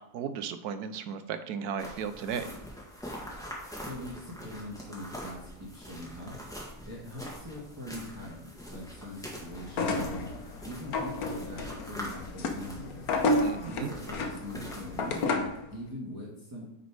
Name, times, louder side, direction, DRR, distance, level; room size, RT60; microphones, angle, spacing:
voice 1, 0.1-2.5 13.4-13.9, right 7 dB, 75° right, 10 dB, 1.1 m, -35 dB
sound 1, 1.8-15.2, equal, ahead, 1.6 m, -44 dB
voice 2, 3.7-6.4 6.8-10.3 10.6-13.1 13.7-16.7, left 1 dB, 15° right, -6 dB, 1.5 m, -42 dB
sound 2, 9.7-15.6, left 2 dB, 70° left, 1.3 m, -31 dB
9.3 x 4.1 x 4.7 m, 0.81 s
omnidirectional pair, 1.7 m